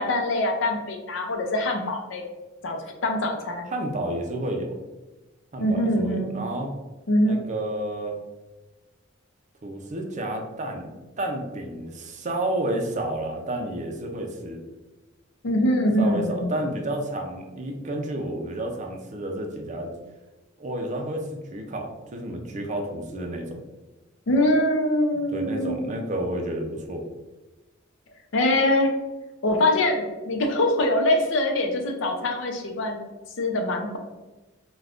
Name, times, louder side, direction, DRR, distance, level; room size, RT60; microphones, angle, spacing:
voice 1, 0.0-2.3 2.6-3.7 5.6-6.4 7.1-7.5 15.4-16.6 24.3-25.9 28.3-29.0 29.4-33.0 33.4-34.0, left 1 dB, 70° left, 3 dB, 0.5 m, -23 dB
voice 2, 3.7-4.7 5.5-6.7 7.2-8.2 9.6-14.6 16.0-19.9 20.6-23.6 25.1-27.0, right 1 dB, 40° right, 2 dB, 0.5 m, -31 dB
2.4 x 2.2 x 3.4 m, 1.1 s
head